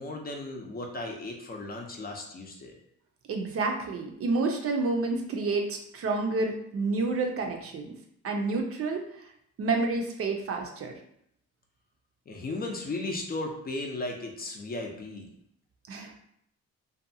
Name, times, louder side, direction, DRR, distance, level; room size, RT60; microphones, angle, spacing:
voice 1, 0.0-2.7 12.3-15.3, left 2 dB, 30° left, 1 dB, 0.5 m, -36 dB
voice 2, 3.3-7.9 8.2-9.0 9.6-11.0 15.9-16.1, right 3 dB, 50° right, 3 dB, 0.5 m, -29 dB
2.6 x 2.2 x 2.6 m, 0.71 s
cardioid pair, 90°, 30 cm